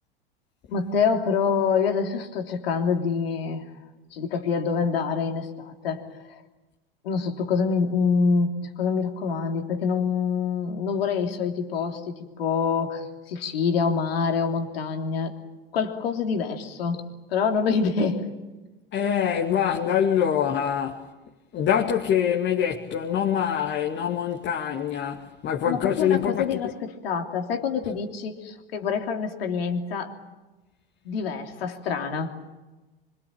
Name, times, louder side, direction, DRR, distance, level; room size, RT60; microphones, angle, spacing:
voice 1, 0.7-3.7 4.1-6.4 7.0-15.4 15.7-17.0 17.3-18.4 25.6-30.2 31.0-32.3, left 5 dB, 75° left, 3.3 m, -26 dB
voice 2, 18.9-21.1 21.5-26.6, left 9 dB, 35° left, 2.3 m, -24 dB
25.5 x 24.5 x 8.8 m
hypercardioid pair, 95°, 30 cm